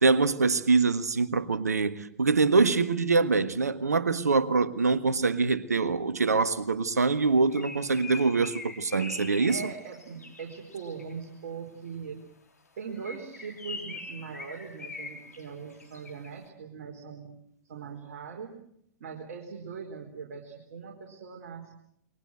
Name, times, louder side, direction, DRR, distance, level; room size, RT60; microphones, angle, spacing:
voice 1, 0.0-9.6, right 4 dB, 75° right, 1.6 m, -24 dB
Bird, 7.1-11.2 12.9-16.4, left 3 dB, 80° left, 4.1 m, -43 dB
voice 2, 9.5-12.2 12.8-17.3 17.7-18.5 19.0-21.7, right 6 dB, 55° right, 4.6 m, -41 dB
28.5 x 23.0 x 7.9 m
figure-of-eight pair, 100°, 9 cm